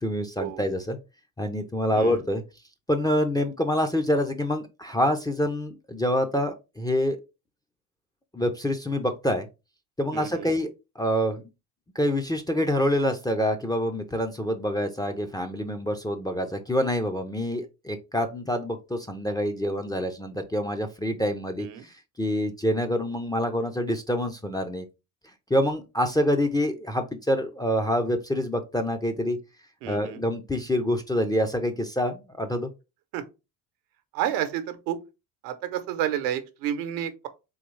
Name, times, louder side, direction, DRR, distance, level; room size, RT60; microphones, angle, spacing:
voice 1, 0.0-1.0 1.4-2.4 2.9-7.2 8.3-9.5 10.0-10.7 11.0-11.4 12.0-21.7 22.2-24.8 25.5-29.4 29.9-32.7, equal, 10° left, 0.5 m, -26 dB
voice 2, 10.1-10.5 21.6-21.8 29.8-30.2 33.1-33.2 34.1-35.0 35.4-37.3, right 11 dB, 75° right, 0.9 m, -30 dB
3.9 x 3.0 x 3.1 m
supercardioid pair, 80°, 50 cm